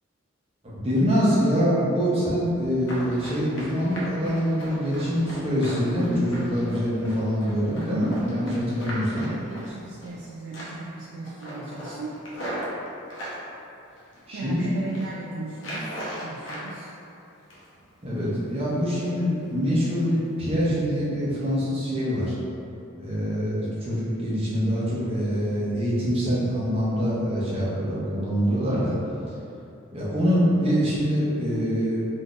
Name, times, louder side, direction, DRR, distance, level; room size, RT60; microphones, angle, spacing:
voice 1, 0.6-9.3 14.3-14.6 18.0-22.4 23.0-29.0 29.9-32.1, equal, 30° right, -8 dB, 0.7 m, -24 dB
Run, 2.8-10.2 10.5-10.9 11.2-13.4 14.0-14.5 14.8-15.1 15.6-16.7 17.0-17.8 18.2-18.3 18.7-19.1 19.4-19.5 20.0-20.1 20.5-20.6, equal, 65° left, 0.7 m, -38 dB
voice 2, 8.9-12.5 14.3-16.9, right 2 dB, 70° right, -5 dB, 0.3 m, -37 dB
3.6 x 2.6 x 2.4 m, 2.7 s
head